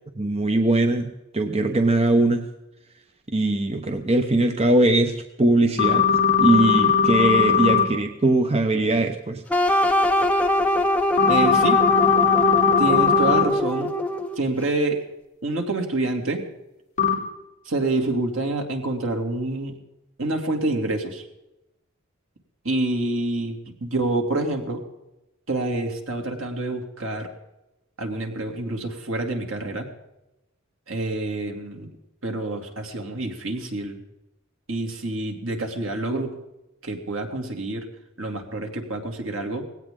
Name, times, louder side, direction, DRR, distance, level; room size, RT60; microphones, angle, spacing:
voice 1, 0.2-2.5 3.3-6.0 6.4-9.4, right 2 dB, 30° right, 5 dB, 1.0 m, -21 dB
sound 1, 5.8-7.8 11.2-13.4 17.0-17.1, left 7 dB, 35° left, 3.5 m, -19 dB
sound 2, 9.5-14.4, left 1 dB, 5° left, 1.0 m, -22 dB
voice 2, 11.3-11.8 12.8-13.9 14.4-15.0 15.4-16.5 17.6-19.8 20.2-21.3 22.6-24.8 25.5-27.3 28.0-29.9 30.9-31.9 32.2-34.0 34.7-36.4 36.8-37.9 38.2-39.6, right 2 dB, 70° right, 3 dB, 2.7 m, -27 dB
19.0 x 17.0 x 3.8 m, 0.95 s
head